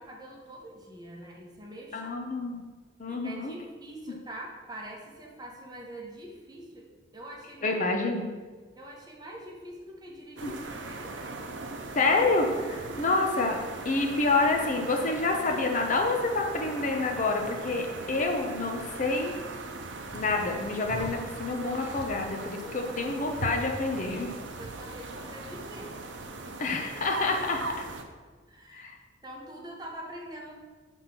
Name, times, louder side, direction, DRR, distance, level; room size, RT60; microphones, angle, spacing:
voice 1, 0.0-2.1 3.1-7.8 8.7-11.3 13.0-13.2 22.6-23.0 24.6-26.0 26.4-27.1 28.5-28.9 29.2-30.5, right 1 dB, 20° right, -1 dB, 1.1 m, -44 dB
voice 2, 1.9-2.6 3.0-3.5 7.6-8.3 10.4-10.5 11.9-13.6 13.8-19.3 20.1-24.3 26.6-27.9 28.7-29.0, left 3 dB, 45° left, 2 dB, 0.7 m, -28 dB
sound 1, 10.4-28.0, right 3 dB, 80° right, 0.7 m, -39 dB
5.8 x 3.6 x 5.8 m, 1.4 s
head